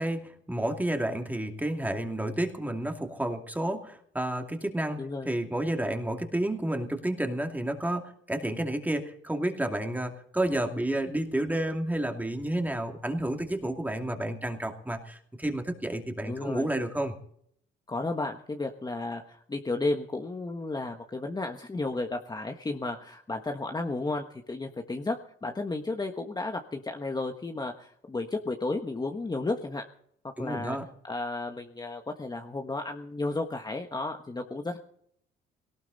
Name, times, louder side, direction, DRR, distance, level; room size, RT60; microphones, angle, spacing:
voice 1, 0.0-5.0 5.3-17.1 30.4-30.8, right 1 dB, 10° right, 4 dB, 2.5 m, -30 dB
voice 2, 16.2-16.7 17.9-29.8 30.2-30.8 31.0-34.8, left 2 dB, 20° left, 4 dB, 1.4 m, -33 dB
18.0 x 18.0 x 4.1 m, 0.66 s
cardioid pair, 90°, 20 cm